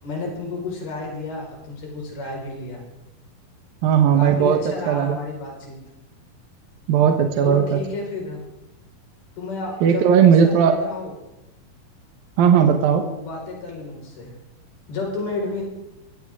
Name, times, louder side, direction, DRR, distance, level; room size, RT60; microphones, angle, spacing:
voice 1, 0.0-2.8 4.2-5.8 7.4-8.4 9.4-11.1 13.0-14.3 14.9-15.6, left 3 dB, 70° left, -1 dB, 6.9 m, -31 dB
voice 2, 3.8-5.2 6.9-7.8 9.8-10.7 12.4-13.0, right 7 dB, 70° right, 5 dB, 2.8 m, -17 dB
23.0 x 16.5 x 3.7 m, 0.94 s
omnidirectional pair, 4.6 m